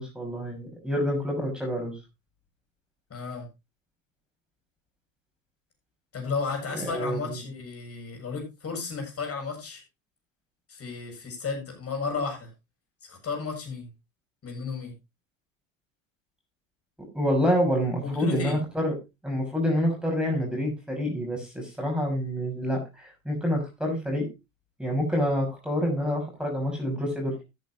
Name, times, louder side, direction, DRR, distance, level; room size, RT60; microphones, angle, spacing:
voice 1, 0.0-1.9 6.7-7.4 17.1-18.9 19.2-24.3 24.8-27.4, equal, ahead, 0 dB, 6.0 m, -27 dB
voice 2, 3.1-3.5 6.1-9.8 10.7-12.5 13.1-13.9 14.4-14.9 18.0-18.6, left 4 dB, 35° left, 2 dB, 7.2 m, -33 dB
13.5 x 9.5 x 3.0 m, 0.24 s
hypercardioid pair, 75°, 42 cm